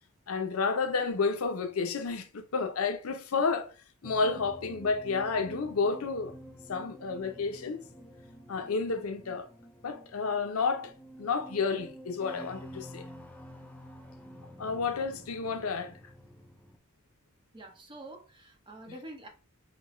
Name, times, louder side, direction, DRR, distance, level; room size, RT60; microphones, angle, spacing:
voice 1, 0.3-3.7 4.0-6.3 6.7-7.8 8.5-9.5 9.8-10.9 11.2-13.0 14.6-15.9 18.9-19.0, left 4 dB, 85° left, 0.6 m, -31 dB
sound 1, 4.0-16.8, equal, 5° left, 0.5 m, -49 dB
voice 2, 17.5-19.3, right 1 dB, 20° right, 0.8 m, -46 dB
5.0 x 2.2 x 3.0 m
head